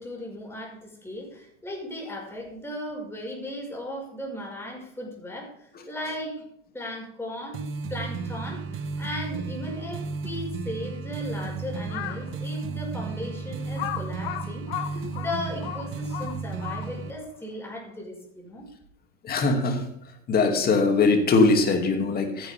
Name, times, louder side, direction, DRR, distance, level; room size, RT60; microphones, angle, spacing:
voice 1, 0.0-6.5 6.7-7.6 7.9-18.7, left 1 dB, 5° left, -1 dB, 5.3 m, -36 dB
sound 1, 7.5-17.1, right 4 dB, 35° right, 1.3 m, -34 dB
Crow, 11.8-12.3 12.9-13.0 13.8-17.2, left 12 dB, 60° left, 1.3 m, -35 dB
voice 2, 19.2-19.9 20.3-22.5, left 3 dB, 25° left, 4 dB, 2.6 m, -21 dB
14.0 x 10.0 x 3.6 m, 0.73 s
hypercardioid pair, 100°, 33 cm